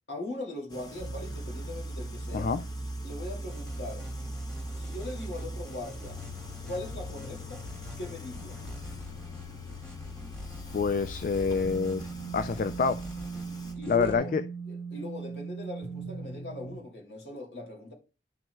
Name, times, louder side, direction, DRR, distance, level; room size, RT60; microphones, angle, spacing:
voice 1, 0.1-2.5 3.0-4.1 4.7-6.2 6.6-7.6 8.0-8.6 13.7-14.3 14.7-17.9, left 1 dB, 70° left, 2.5 m, -40 dB
sound 1, 0.7-13.7, left 1 dB, 25° left, 1.0 m, -46 dB
sound 2, 1.0-16.8, right 2 dB, 85° left, 1.1 m, -40 dB
voice 2, 2.3-2.6 10.7-12.0 12.3-13.0 13.9-14.4, left 5 dB, 50° left, 0.3 m, -27 dB
sound 3, 3.5-14.2, equal, 5° left, 2.2 m, -46 dB
10.5 x 6.1 x 2.2 m
head